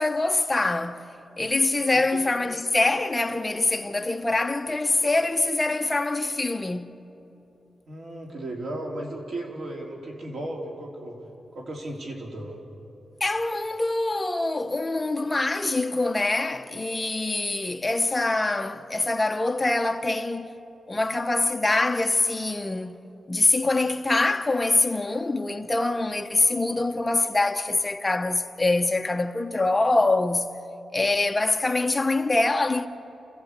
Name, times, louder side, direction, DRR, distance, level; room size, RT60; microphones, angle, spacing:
voice 1, 0.0-6.9 13.2-20.6 20.9-23.0 23.3-30.5 30.9-32.9, left 2 dB, 20° left, 0.9 m, -24 dB
voice 2, 7.9-11.2 11.5-12.6, right 1 dB, 70° right, 3.5 m, -35 dB
29.0 x 14.5 x 8.2 m
wide cardioid pair, 125°, 0 cm